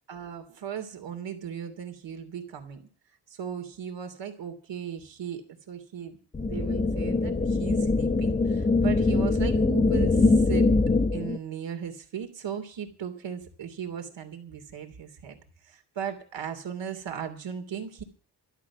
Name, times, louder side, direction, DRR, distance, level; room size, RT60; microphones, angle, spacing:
voice 1, 0.1-2.9 3.3-10.7 11.1-15.4 15.6-18.0, right 8 dB, 85° right, 6 dB, 3.0 m, -37 dB
sound 1, 6.3-11.4, left 3 dB, 20° left, 1.0 m, -23 dB
13.0 x 12.5 x 6.0 m, 0.44 s
cardioid pair, 80°, 43 cm